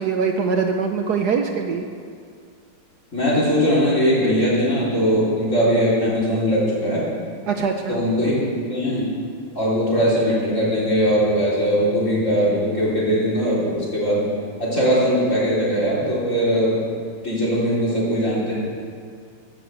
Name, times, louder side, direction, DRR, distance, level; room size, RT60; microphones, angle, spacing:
voice 1, 0.0-1.9 7.5-8.0, right 5 dB, 65° right, 4 dB, 1.3 m, -22 dB
voice 2, 3.1-7.1 7.9-8.4 8.7-9.1 9.5-14.2 14.6-16.8 17.2-18.5, equal, 40° left, -7 dB, 4.3 m, -20 dB
14.5 x 7.7 x 7.8 m, 2.2 s
omnidirectional pair, 2.0 m